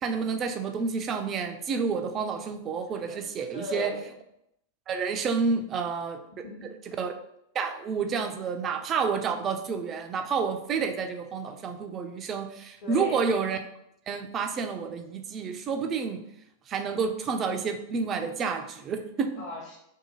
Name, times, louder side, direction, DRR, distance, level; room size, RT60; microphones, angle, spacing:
voice 1, 0.0-3.9 4.9-6.2 7.0-7.1 7.5-13.6 14.1-16.2 16.7-19.4, right 5 dB, 30° right, 6 dB, 0.3 m, -29 dB
voice 2, 2.9-3.2 3.5-4.1 5.6-5.8 6.3-6.7 12.8-13.3 19.4-19.8, left 3 dB, 45° left, -3 dB, 0.9 m, -38 dB
2.7 x 2.2 x 2.9 m, 0.79 s
figure-of-eight pair, 90°, 0 cm